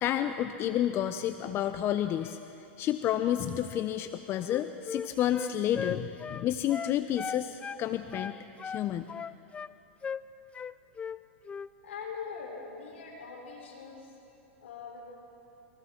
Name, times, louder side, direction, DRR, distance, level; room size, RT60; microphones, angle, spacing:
voice 1, 0.0-8.3 8.6-9.1, left 11 dB, 35° left, 9 dB, 0.8 m, -30 dB
Wind instrument woodwind instrument, 4.4-7.8 8.1-9.7 10.0-10.3 10.5-11.2 11.5-11.7, left 6 dB, 20° left, 0.4 m, -37 dB
voice 2, 11.8-14.1 14.6-15.0, left 5 dB, 80° left, 0 dB, 5.7 m, -42 dB
29.0 x 23.0 x 4.5 m, 2.8 s
hypercardioid pair, 110°, 7 cm